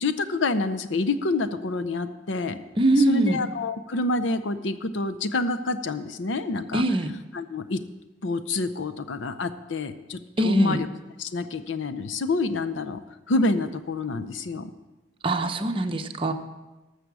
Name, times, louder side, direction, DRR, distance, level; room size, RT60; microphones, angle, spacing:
voice 1, 0.0-2.6 3.0-6.8 7.3-7.8 8.2-10.9 11.2-13.0 13.3-14.7, left 2 dB, 80° left, 11 dB, 0.7 m, -27 dB
voice 2, 2.8-3.4 6.7-7.1 10.4-10.8 15.2-16.3, right 2 dB, 30° right, 5 dB, 0.7 m, -22 dB
13.0 x 6.7 x 6.1 m, 1.1 s
head